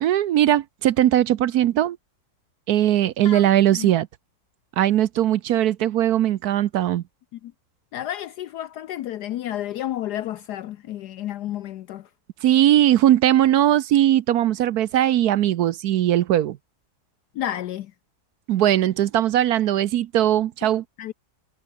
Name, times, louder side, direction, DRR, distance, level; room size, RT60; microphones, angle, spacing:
voice 1, 0.0-2.0 2.7-4.1 4.8-7.0 12.4-16.6 18.5-20.8, right 12 dB, 70° right, 1.1 m, -19 dB
voice 2, 7.9-12.1 17.3-17.9 21.0-21.1, left 12 dB, 70° left, 1.2 m, -31 dB
omnidirectional pair, 1.9 m